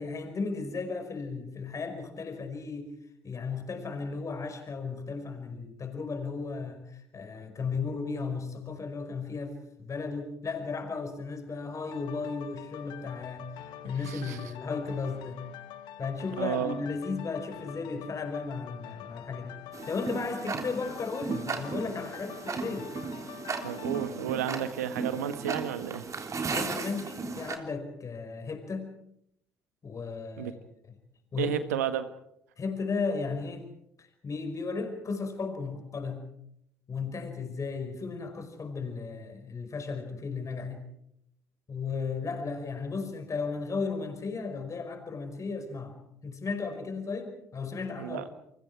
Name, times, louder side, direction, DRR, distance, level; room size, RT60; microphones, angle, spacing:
voice 1, 0.0-2.9 3.2-13.5 13.8-15.4 16.0-19.6 19.9-22.9 24.5-24.6 26.4-29.0 29.8-30.6 30.9-31.0 31.3-31.6 32.6-33.7 34.0-36.2 36.9-40.8 41.7-48.3, left 4 dB, 40° left, 6 dB, 5.2 m, -35 dB
sound 1, 11.9-25.6 26.1-26.2, left 10 dB, 65° left, 1.6 m, -46 dB
voice 2, 14.0-14.5 16.4-16.8 23.6-26.0 30.4-30.5 31.4-32.1 48.0-48.2, right 9 dB, 85° right, 10 dB, 1.6 m, -32 dB
Tick-tock, 19.7-27.6, right 4 dB, 40° right, 3.6 m, -36 dB
29.0 x 24.5 x 4.8 m, 0.76 s
hypercardioid pair, 55°, 8 cm